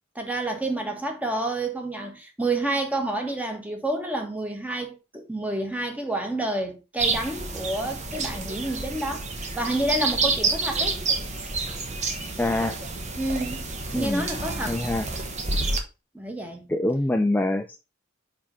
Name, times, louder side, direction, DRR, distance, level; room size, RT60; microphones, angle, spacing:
voice 1, 0.1-9.3 9.5-11.0 13.2-14.8 16.1-16.7, right 1 dB, 5° right, 1.4 m, -29 dB
sound 1, 7.0-15.8, right 3 dB, 35° right, 1.2 m, -29 dB
voice 2, 12.4-12.8 13.9-14.3 14.7-15.1 16.7-17.8, left 1 dB, 10° left, 0.4 m, -25 dB
5.4 x 5.1 x 4.3 m
head